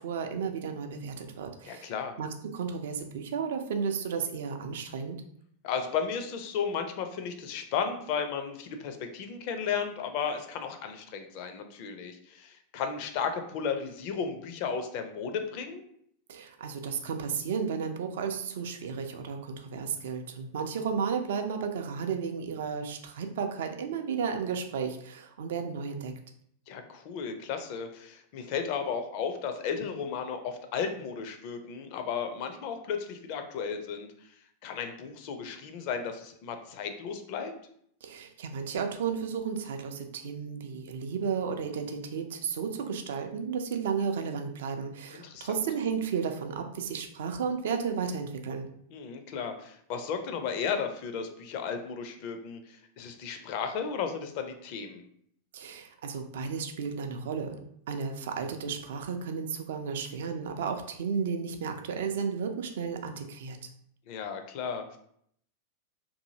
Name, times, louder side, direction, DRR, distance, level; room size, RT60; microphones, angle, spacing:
voice 1, 0.0-1.9 2.2-5.2 16.3-26.1 38.0-48.7 55.5-63.6, right 6 dB, 60° right, 6 dB, 0.4 m, -33 dB
voice 2, 1.6-2.1 5.6-15.8 26.7-34.1 34.6-37.5 45.1-45.6 48.9-55.0 64.1-65.0, left 6 dB, 45° left, 7 dB, 0.4 m, -34 dB
2.7 x 2.6 x 2.7 m, 0.68 s
figure-of-eight pair, 90°, 0 cm